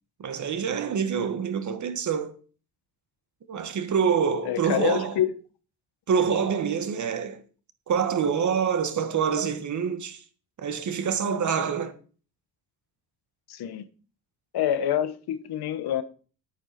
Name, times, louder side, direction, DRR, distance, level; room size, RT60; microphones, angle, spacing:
voice 1, 0.2-2.3 3.5-5.2 6.1-7.4 7.9-10.2 10.6-12.0, right 6 dB, 50° right, 1.6 m, -26 dB
voice 2, 4.4-5.3 13.5-13.9 14.5-16.0, left 11 dB, 80° left, 1.3 m, -26 dB
10.5 x 9.1 x 5.9 m
cardioid pair, 140°, 38 cm